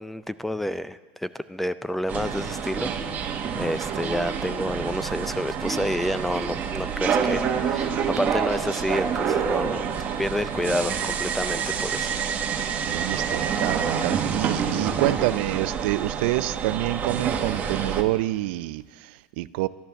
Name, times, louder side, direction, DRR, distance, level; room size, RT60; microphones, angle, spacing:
voice 1, 0.0-9.8 10.2-12.1, equal, 5° left, 15 dB, 0.4 m, -29 dB
sound 1, 2.1-18.0, right 7 dB, 30° right, 1.3 m, -27 dB
voice 2, 12.9-19.7, right 17 dB, 70° right, 16 dB, 0.5 m, -27 dB
11.5 x 11.0 x 7.0 m, 1.4 s
supercardioid pair, 130°, 6 cm